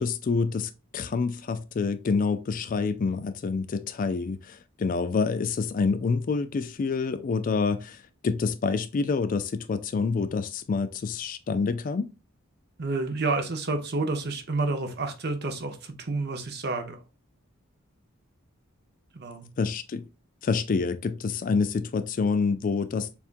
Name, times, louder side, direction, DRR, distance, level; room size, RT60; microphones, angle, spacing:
voice 1, 0.0-8.0 8.2-12.1 19.6-20.0 20.4-23.2, left 4 dB, 40° left, 0.3 m, -27 dB
voice 2, 12.8-17.0 19.1-19.5, right 3 dB, 50° right, 0.8 m, -29 dB
6.9 x 2.4 x 2.5 m
head